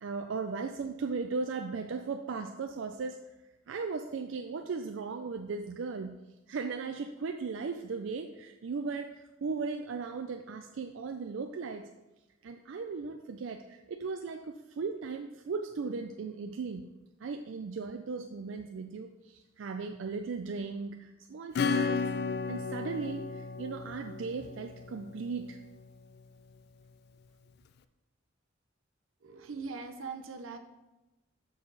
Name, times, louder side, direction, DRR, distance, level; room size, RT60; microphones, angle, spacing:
voice 1, 0.0-3.2 3.7-6.2 6.5-11.9 12.4-16.9 17.2-22.1 22.5-25.6, right 4 dB, 70° right, 5 dB, 0.4 m, -37 dB
Acoustic guitar / Strum, 21.5-25.8, left 5 dB, 55° left, 0.3 m, -34 dB
voice 2, 29.2-30.6, right 4 dB, 90° right, 7 dB, 0.8 m, -41 dB
6.6 x 6.3 x 4.0 m, 1.0 s
head